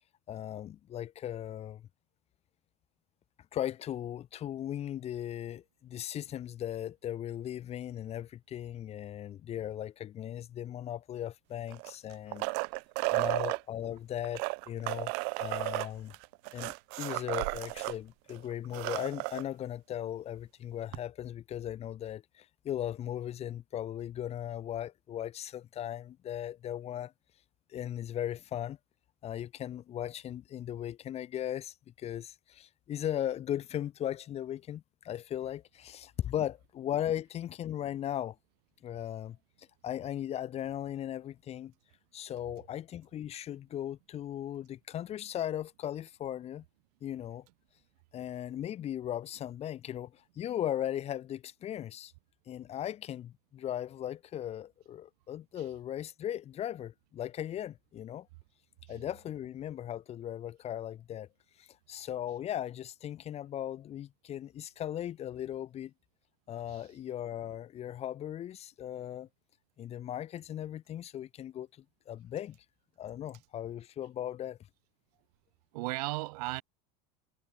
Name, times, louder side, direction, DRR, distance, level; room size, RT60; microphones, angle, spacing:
voice 1, 0.3-1.9 3.5-12.5 13.1-15.1 15.4-16.1 16.5-27.1 27.7-28.8 29.2-38.4 38.8-41.7 42.1-46.6 47.0-47.5 48.1-52.1 52.5-58.3 58.9-61.3 61.6-65.9 66.5-69.3 69.8-72.6 73.0-74.6, left 11 dB, 30° left, 2.6 m, -38 dB
sound 1, 11.7-13.6 14.2-18.0 18.3-18.4 18.6-19.4 20.9-21.0, right 40 dB or more, 55° right, 0.7 m, -33 dB
voice 2, 75.7-76.6, right 22 dB, 70° right, 3.2 m, -36 dB
supercardioid pair, 145°, 21 cm